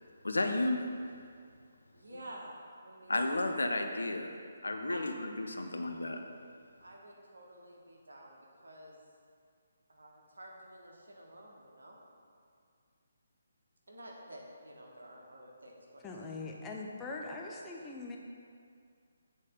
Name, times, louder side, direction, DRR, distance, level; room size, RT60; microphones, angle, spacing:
voice 1, 0.2-0.8 3.1-4.3 4.6-6.2, left 2 dB, 85° left, 5 dB, 0.6 m, -32 dB
voice 2, 1.9-2.5 2.8-3.8 4.9-5.1 6.8-9.0 9.9-12.0 13.9-16.1, right 1 dB, 75° right, -1 dB, 1.3 m, -51 dB
voice 3, 16.0-18.2, left 3 dB, 15° left, -1 dB, 0.6 m, -42 dB
8.4 x 4.1 x 3.7 m, 2.2 s
figure-of-eight pair, 145°, 0 cm